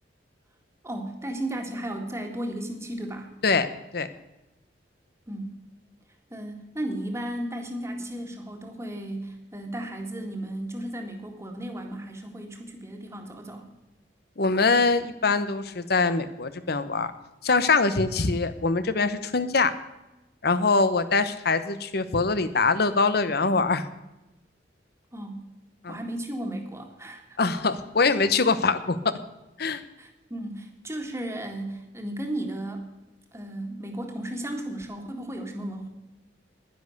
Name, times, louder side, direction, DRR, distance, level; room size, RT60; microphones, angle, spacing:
voice 1, 0.8-3.3 5.3-5.6 6.3-13.7 25.1-25.4 25.9-27.2 30.0-32.9 33.3-35.9, right 1 dB, 15° right, 3 dB, 1.9 m, -34 dB
voice 2, 14.4-17.1 17.4-19.7 20.4-23.8 25.8-26.0 27.4-29.0 29.6-29.8, left 4 dB, 60° left, 12 dB, 0.9 m, -23 dB
10.5 x 10.5 x 6.6 m, 0.99 s
head